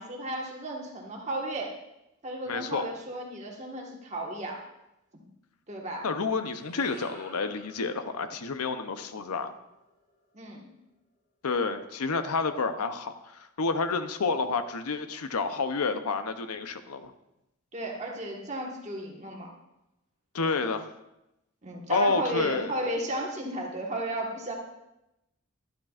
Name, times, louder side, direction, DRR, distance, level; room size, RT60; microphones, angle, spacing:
voice 1, 0.0-1.7 2.2-4.6 5.1-5.2 5.7-6.1 10.3-10.6 17.7-19.5 21.6-24.5, right 1 dB, 30° right, 0 dB, 1.5 m, -34 dB
voice 2, 2.5-2.8 6.0-9.5 11.4-17.1 20.3-20.8 21.9-22.7, left 4 dB, 85° left, 9 dB, 0.7 m, -29 dB
sound 1, 6.3-10.7, left 1 dB, 35° left, 2.6 m, -52 dB
11.5 x 11.5 x 2.4 m, 0.89 s
head